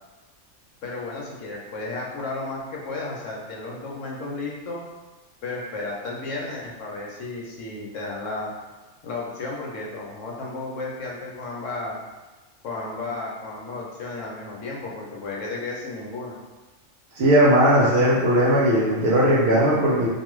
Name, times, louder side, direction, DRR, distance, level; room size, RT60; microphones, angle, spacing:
voice 1, 0.8-4.8 5.4-8.5 9.0-12.0 12.6-16.4, left 3 dB, 70° left, -3 dB, 0.9 m, -33 dB
voice 2, 17.2-20.1, equal, 60° right, -6 dB, 0.7 m, -18 dB
2.5 x 2.3 x 3.0 m, 1.2 s
omnidirectional pair, 1.4 m